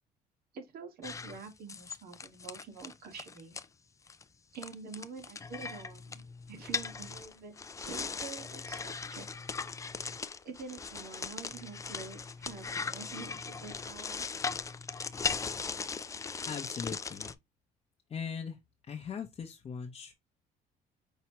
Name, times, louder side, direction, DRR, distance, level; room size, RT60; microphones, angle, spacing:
voice 1, 0.5-3.6 4.5-9.3 10.4-14.3 15.6-15.7, right 5 dB, 65° right, 1.6 m, -47 dB
sound 1, 1.0-3.6 4.1-4.2 4.5-17.3, left 5 dB, 20° left, 0.4 m, -39 dB
voice 2, 16.5-17.3 18.1-18.6 18.9-20.1, left 6 dB, 35° left, 0.8 m, -39 dB
5.7 x 2.8 x 2.9 m
cardioid pair, 110°, 17 cm